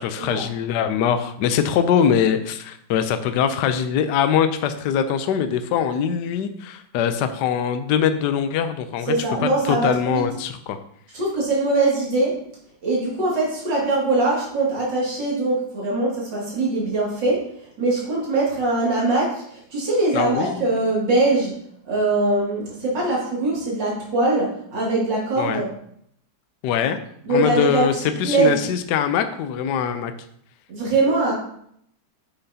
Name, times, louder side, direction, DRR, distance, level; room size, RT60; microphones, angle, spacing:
voice 1, 0.0-9.1 9.6-10.8 20.1-20.6 25.4-25.6 26.6-27.0 27.3-30.1, left 8 dB, 75° left, 9 dB, 1.1 m, -22 dB
voice 2, 9.1-10.2 11.1-12.3 12.8-17.4 17.8-21.5 21.8-25.7 27.3-27.9 28.2-28.6 30.7-31.3, right 2 dB, 70° right, -5 dB, 3.0 m, -22 dB
9.8 x 5.9 x 2.8 m, 0.68 s
omnidirectional pair, 2.1 m